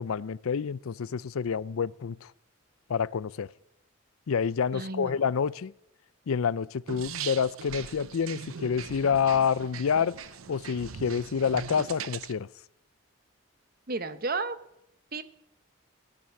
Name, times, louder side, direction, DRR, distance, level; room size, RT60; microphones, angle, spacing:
voice 1, 0.0-2.3 2.9-3.5 4.3-5.7 6.3-10.1 10.5-12.5, left 6 dB, 85° left, 0.5 m, -28 dB
voice 2, 4.7-5.2 13.9-14.6 15.1-15.2, right 3 dB, 45° right, 1.0 m, -32 dB
sound 1, 6.9-12.3, right 7 dB, 85° right, 0.7 m, -40 dB
17.0 x 9.3 x 8.3 m
head